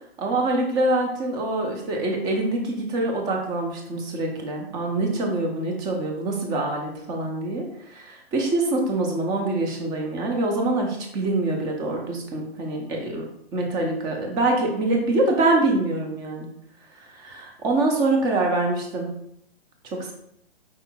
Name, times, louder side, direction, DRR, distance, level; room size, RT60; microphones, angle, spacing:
voice 1, 0.2-13.3 13.5-16.5 17.0-19.1 19.9-20.1, right 2 dB, 15° right, 2 dB, 0.5 m, -25 dB
4.8 x 4.2 x 2.3 m, 0.74 s
hypercardioid pair, 145°, 32 cm